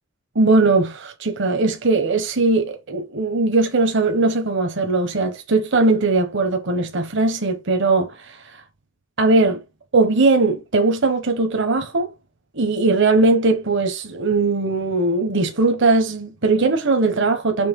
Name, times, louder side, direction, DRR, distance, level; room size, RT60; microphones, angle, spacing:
voice 1, 0.3-8.4 9.2-9.6 9.9-12.1 12.5-17.7, right 3 dB, 65° right, 1.0 m, -19 dB
5.5 x 3.4 x 5.2 m
head